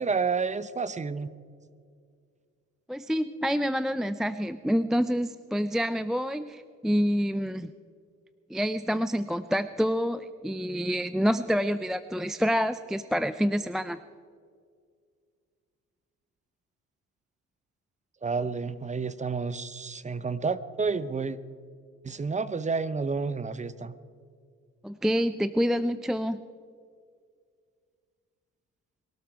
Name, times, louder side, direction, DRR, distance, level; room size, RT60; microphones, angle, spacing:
voice 1, 0.0-1.3 18.2-21.4 22.0-23.9, right 4 dB, 25° right, 15 dB, 0.7 m, -30 dB
voice 2, 2.9-7.7 8.5-14.0 24.8-26.4, equal, ahead, 13 dB, 0.4 m, -27 dB
22.5 x 12.5 x 4.7 m, 2.1 s
cardioid pair, 90°, 30 cm